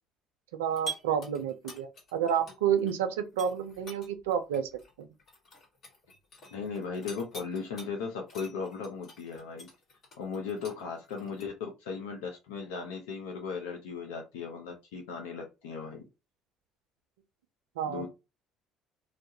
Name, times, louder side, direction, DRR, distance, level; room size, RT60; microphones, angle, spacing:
voice 1, 0.5-4.7 5.0-5.1 17.8-18.1, right 8 dB, 85° right, 0.4 m, -30 dB
sound 1, 0.7-2.9 3.3-7.9 8.3-11.5, right 3 dB, 50° left, 1.2 m, -45 dB
voice 2, 6.5-9.7 10.2-16.1 17.9-18.1, left 5 dB, 80° left, 0.4 m, -37 dB
2.2 x 2.0 x 2.7 m
hypercardioid pair, 60°, 0 cm